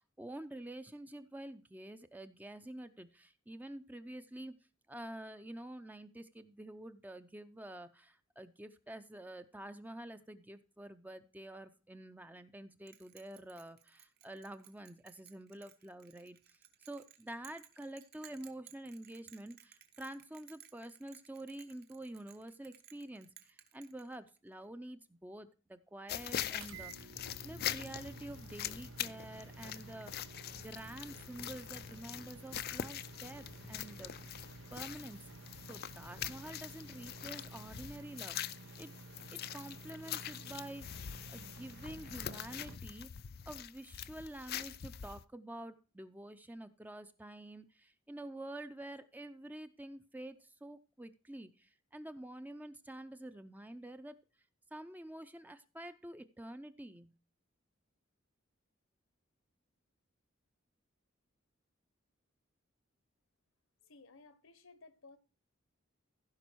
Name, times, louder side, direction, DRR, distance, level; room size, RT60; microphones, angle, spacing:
voice 1, 0.0-4.6 4.9-27.1 27.4-34.1 34.7-35.3 35.7-38.4 38.8-38.9 39.3-41.0 41.3-43.1 43.5-54.2 54.7-57.2, right 1 dB, 10° right, 0.5 m, -48 dB
Bell, 12.9-24.5, right 10 dB, 50° right, 1.0 m, -60 dB
sound 1, 26.1-45.2, left 10 dB, 50° left, 0.4 m, -44 dB
sound 2, 26.6-42.8, right 3 dB, 85° right, 0.8 m, -52 dB
voice 2, 63.8-65.2, left 3 dB, 80° left, 1.1 m, -58 dB
15.5 x 5.4 x 4.6 m
head